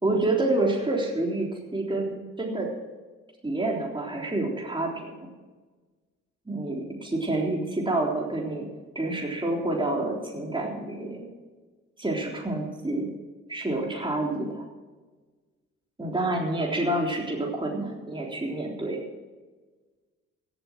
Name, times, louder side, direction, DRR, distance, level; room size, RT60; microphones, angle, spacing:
voice 1, 0.0-2.7 3.4-5.2 6.5-8.7 9.0-11.2 12.0-13.1 13.5-14.7 16.0-19.0, right 2 dB, 15° right, -2 dB, 3.6 m, -28 dB
16.5 x 9.0 x 6.0 m, 1.3 s
hypercardioid pair, 40°, 36 cm